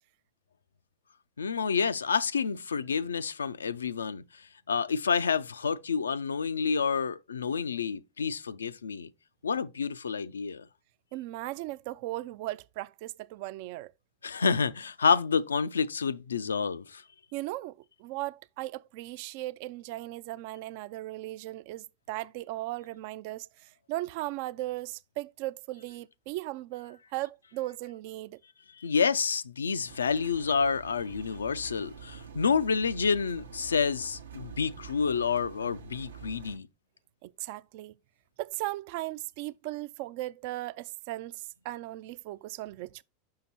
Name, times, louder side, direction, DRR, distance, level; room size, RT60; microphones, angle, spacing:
voice 1, 1.4-4.4 4.7-9.1 9.4-10.7 14.2-17.0 28.8-36.7, left 5 dB, 75° left, 0.4 m, -29 dB
voice 2, 11.1-13.9 17.3-28.4 37.2-37.9 38.4-43.0, right 17 dB, 55° right, 0.3 m, -37 dB
Engine, 29.9-36.6, right 7 dB, 75° right, 0.7 m, -46 dB
5.7 x 5.7 x 4.1 m
figure-of-eight pair, 85°, 0 cm